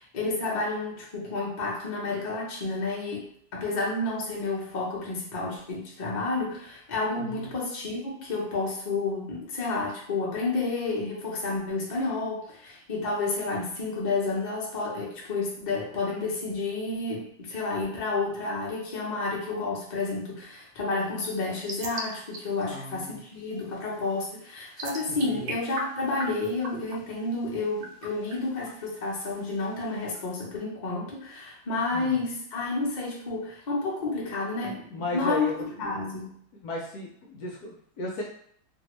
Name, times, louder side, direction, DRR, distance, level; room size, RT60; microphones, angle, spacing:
voice 1, 0.0-34.8 35.1-35.5 35.8-36.3, left 3 dB, 55° left, -4 dB, 0.4 m, -30 dB
voice 2, 7.2-7.5 22.5-23.2 25.1-25.5 31.9-32.3 34.6-35.6 36.6-38.2, left 2 dB, 70° left, -2 dB, 0.9 m, -36 dB
sound 1, 21.2-30.2, right 2 dB, 80° right, 1.3 m, -43 dB
2.9 x 2.6 x 3.0 m, 0.65 s
omnidirectional pair, 2.0 m